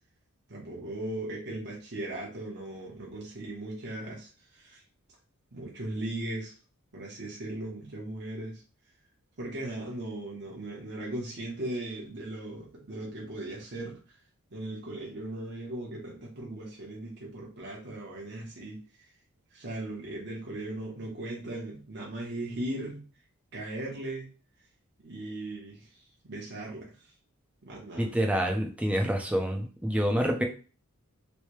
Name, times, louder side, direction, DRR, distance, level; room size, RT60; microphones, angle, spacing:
voice 1, 0.5-4.8 5.5-6.6 6.9-8.6 9.4-14.0 14.5-18.8 19.5-23.0 23.5-24.3 25.0-27.1 27.6-28.2, right 1 dB, 50° right, -3 dB, 0.9 m, -38 dB
voice 2, 28.0-30.4, equal, 5° right, 3 dB, 0.5 m, -27 dB
3.2 x 2.7 x 3.0 m, 0.36 s
head